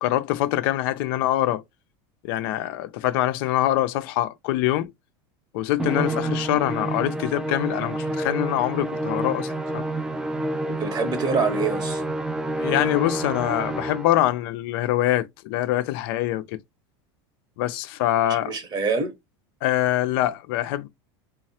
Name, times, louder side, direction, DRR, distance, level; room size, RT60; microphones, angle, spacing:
voice 1, 0.0-1.6 2.2-4.9 5.5-9.9 12.6-16.6 17.6-18.5 19.6-20.9, left 14 dB, 65° left, 0.4 m, -24 dB
Musical instrument, 5.8-14.3, right 1 dB, 5° right, 0.3 m, -28 dB
voice 2, 10.8-12.0 18.3-19.1, right 4 dB, 35° right, 1.0 m, -25 dB
3.1 x 2.0 x 2.7 m
supercardioid pair, 115°, 13 cm